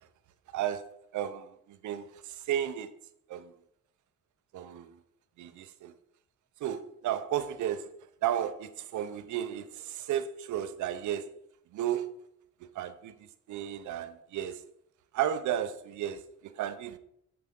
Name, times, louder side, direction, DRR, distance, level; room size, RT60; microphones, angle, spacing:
voice 1, 0.5-2.9 3.3-3.5 4.5-5.0 5.4-5.9 6.6-7.9 8.2-11.3 11.7-12.1 12.6-14.6 15.1-17.0, right 10 dB, 75° right, 0.7 m, -34 dB
8.0 x 5.8 x 3.8 m
cardioid pair, 90°, 30 cm